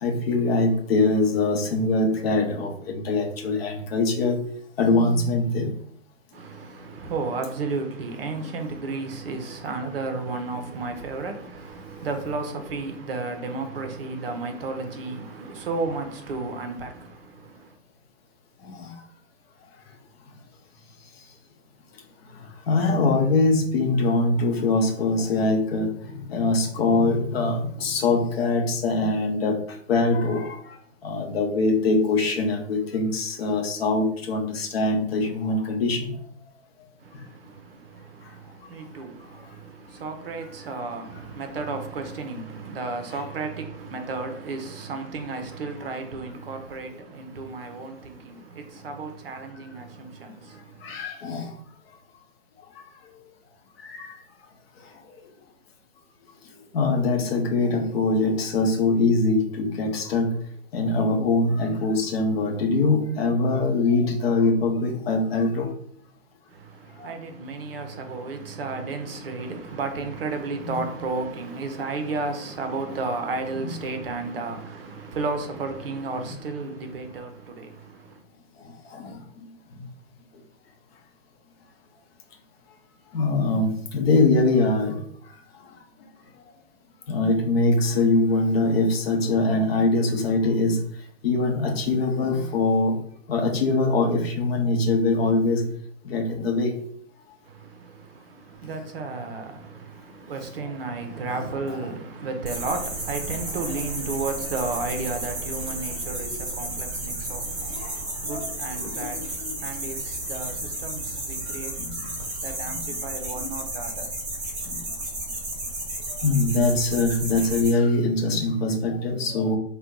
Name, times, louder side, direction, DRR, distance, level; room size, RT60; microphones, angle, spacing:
voice 1, 0.0-4.4 4.8-5.7 18.6-18.9 22.7-29.6 29.9-30.7 31.0-36.1 50.8-51.5 53.8-54.1 56.7-60.4 60.7-65.7 67.0-67.1 70.7-70.8 73.6-73.7 78.9-79.1 83.1-85.0 87.1-90.8 91.2-93.0 93.3-95.7 96.0-96.7 101.1-101.4 106.1-106.4 107.6-107.9 108.3-109.5 111.5-112.2 112.6-112.8 113.4-113.5 114.7-114.8 116.2-119.6, left 3 dB, 50° left, 0.7 m, -23 dB
voice 2, 6.3-17.8 37.0-51.0 66.5-78.2 97.4-111.9 112.4-114.1, right 3 dB, 45° right, 0.6 m, -33 dB
sound 1, 102.5-117.7, right 2 dB, 10° right, 1.0 m, -33 dB
2.6 x 2.2 x 3.5 m
hypercardioid pair, 135°, 39 cm